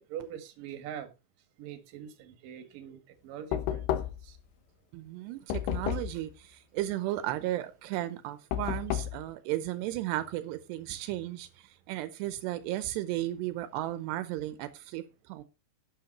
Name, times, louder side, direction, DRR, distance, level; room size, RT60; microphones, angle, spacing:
voice 1, 0.1-1.1 1.6-3.9 4.2-4.4, right 9 dB, 60° right, 3.0 m, -43 dB
Knock, 3.5-4.4 5.5-6.2 8.5-9.2, left 11 dB, 75° left, 3.0 m, -31 dB
voice 2, 4.9-15.4, right 14 dB, 85° right, 2.8 m, -35 dB
11.5 x 8.5 x 4.2 m
omnidirectional pair, 4.8 m